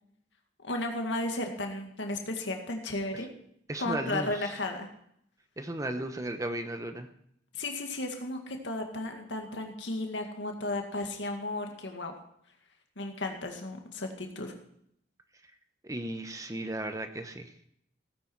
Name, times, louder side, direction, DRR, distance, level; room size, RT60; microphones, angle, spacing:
voice 1, 0.6-3.3 3.8-4.9 7.5-12.1 13.0-14.5, left 2 dB, 80° left, 3 dB, 2.0 m, -34 dB
voice 2, 3.7-4.5 5.6-7.1 15.8-17.5, right 1 dB, 20° right, 8 dB, 0.9 m, -35 dB
16.5 x 9.8 x 4.7 m, 0.71 s
head